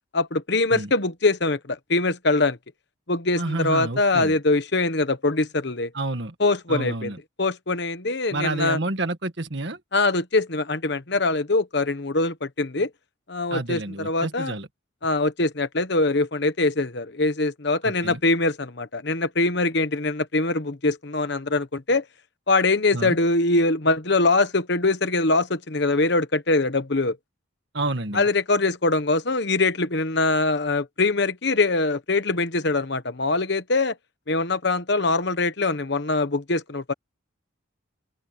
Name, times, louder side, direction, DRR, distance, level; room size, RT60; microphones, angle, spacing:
voice 1, 0.1-2.6 3.1-5.9 6.4-7.1 7.4-8.8 9.9-12.9 13.3-14.5 15.0-22.0 22.5-27.2 28.1-33.9 34.3-36.9, left 2 dB, 55° left, 1.2 m, -23 dB
voice 2, 3.3-4.3 5.9-6.3 6.7-7.2 8.3-9.8 13.5-14.7 17.8-18.2 22.9-23.2 27.7-28.3, right 2 dB, 60° right, 1.8 m, -29 dB
open air
head